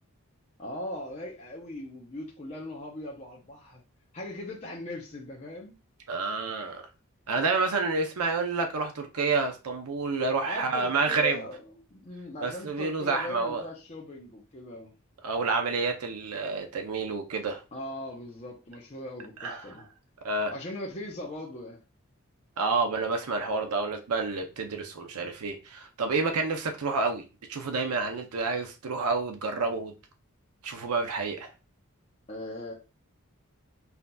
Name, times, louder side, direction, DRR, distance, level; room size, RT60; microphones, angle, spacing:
voice 1, 0.6-3.8 4.1-5.7 10.4-14.9 17.7-19.8 20.5-21.8 32.3-32.7, left 1 dB, 30° left, 0.6 m, -39 dB
voice 2, 6.1-6.8 7.3-11.4 12.4-13.6 15.2-17.6 19.4-19.7 20.2-20.5 22.6-27.2 27.5-29.9 30.6-31.5, right 4 dB, 85° right, 0.6 m, -29 dB
5.6 x 2.7 x 2.2 m
head